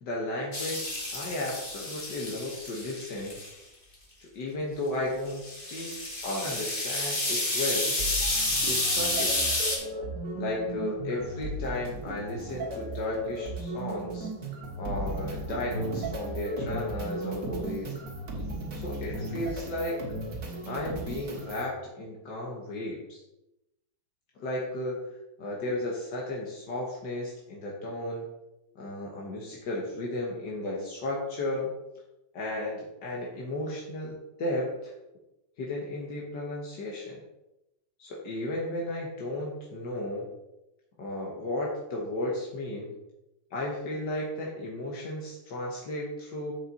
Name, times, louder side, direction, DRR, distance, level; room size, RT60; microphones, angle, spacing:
voice 1, 0.0-3.4 4.3-5.9 6.2-8.0 8.7-9.5 10.4-14.3 14.8-17.9 18.7-20.0 20.7-23.2 24.4-25.0 25.4-28.2 28.8-31.7 32.3-34.9 35.6-37.2 38.0-40.3 41.0-42.9 43.5-46.5, left 1 dB, 75° left, -3 dB, 1.9 m, -34 dB
sound 1, 0.5-3.5 5.3-9.8, left 1 dB, 30° left, 2.0 m, -30 dB
sound 2, 8.0-21.7, right 2 dB, 50° right, 2.0 m, -36 dB
7.6 x 6.8 x 4.1 m, 0.94 s
omnidirectional pair, 1.9 m